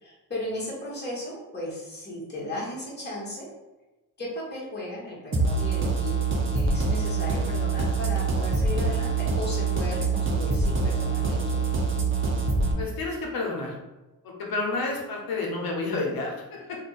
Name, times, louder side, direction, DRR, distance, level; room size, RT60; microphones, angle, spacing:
voice 1, 0.0-3.5 4.2-6.2 6.5-11.7, left 1 dB, 25° left, -5 dB, 1.4 m, -35 dB
sound 1, 5.3-12.7, right 4 dB, 30° right, 0.8 m, -25 dB
voice 2, 12.8-13.7 14.2-16.8, left 3 dB, 60° left, -1 dB, 1.1 m, -30 dB
2.6 x 2.5 x 3.9 m, 1.1 s
supercardioid pair, 65°, 39 cm